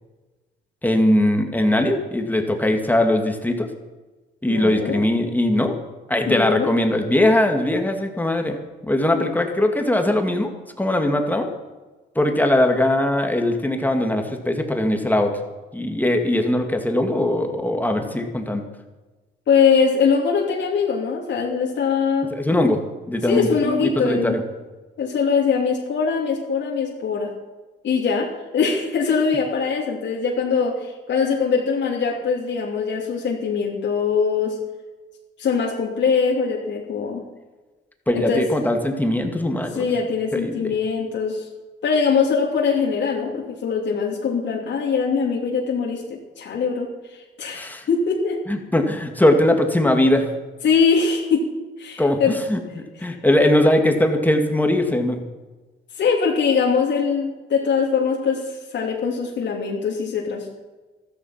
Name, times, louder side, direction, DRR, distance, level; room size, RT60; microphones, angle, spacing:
voice 1, 0.8-3.7 4.4-5.8 6.1-8.6 8.8-10.5 10.8-11.5 12.2-15.3 15.7-18.6 22.3-22.8 23.1-24.4 38.1-39.9 40.3-40.7 47.5-47.8 48.5-50.3 52.0-52.6 53.0-55.2, left 1 dB, 10° left, 4 dB, 2.4 m, -20 dB
voice 2, 4.5-5.0 6.3-6.7 9.1-9.3 19.5-22.3 23.3-24.4 25.0-27.3 27.8-28.3 28.5-34.6 35.4-37.2 38.1-38.4 39.7-41.5 41.8-48.4 50.6-51.4 51.8-52.4 55.9-60.6, left 5 dB, 65° left, -2 dB, 3.0 m, -22 dB
14.0 x 13.5 x 5.9 m, 1.2 s
cardioid pair, 90°, 20 cm